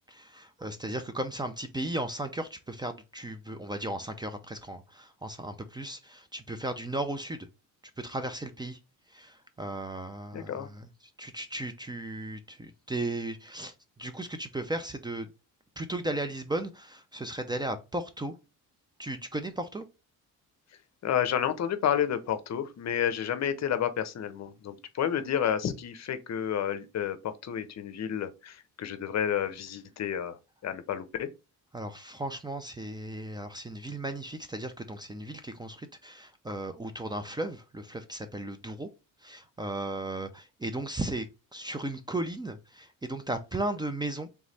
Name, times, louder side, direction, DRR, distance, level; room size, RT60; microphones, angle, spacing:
voice 1, 0.1-7.5 8.0-8.8 9.1-10.9 11.2-13.7 14.0-15.3 15.8-18.4 19.0-19.8 31.7-38.9 39.2-41.3 41.5-44.3, right 1 dB, 15° right, 0.5 m, -35 dB
voice 2, 10.3-10.7 21.0-30.4 30.6-31.3, left 9 dB, 50° left, 0.7 m, -30 dB
3.5 x 3.1 x 4.0 m
cardioid pair, 105°, 34 cm